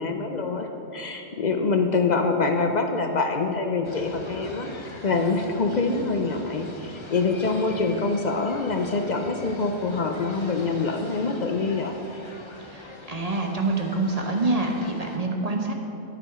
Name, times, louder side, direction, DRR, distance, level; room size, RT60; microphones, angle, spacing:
voice 1, 0.0-4.7 5.0-11.9, left 4 dB, 60° left, 4 dB, 0.4 m, -25 dB
sound 1, 3.8-15.2, left 1 dB, 25° left, 0.7 m, -43 dB
voice 2, 12.6-15.7, right 2 dB, 35° right, 1 dB, 0.8 m, -26 dB
9.7 x 8.1 x 4.8 m, 2.8 s
omnidirectional pair, 1.5 m